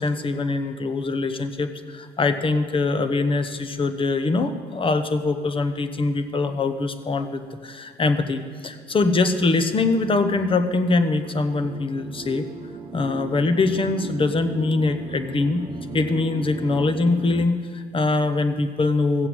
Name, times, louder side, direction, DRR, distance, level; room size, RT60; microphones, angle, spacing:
voice 1, 0.0-12.5 12.9-15.7 15.9-19.3, left 3 dB, 30° left, 10 dB, 1.1 m, -23 dB
sound 1, 7.8-17.5, right 3 dB, 25° right, 0.8 m, -38 dB
16.0 x 7.8 x 7.9 m, 2.1 s
cardioid pair, 105°, 18 cm